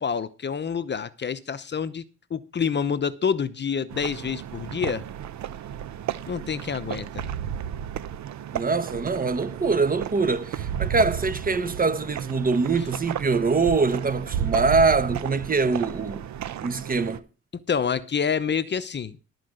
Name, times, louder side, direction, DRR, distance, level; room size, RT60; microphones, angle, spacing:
voice 1, 0.0-5.0 6.3-7.3 17.5-19.3, left 6 dB, 35° left, 0.8 m, -28 dB
sound 1, 3.9-17.2, right 10 dB, 70° right, 0.9 m, -33 dB
voice 2, 8.5-16.2 16.6-17.2, right 4 dB, 30° right, 1.0 m, -23 dB
13.0 x 4.8 x 7.8 m
cardioid pair, 90°, 30 cm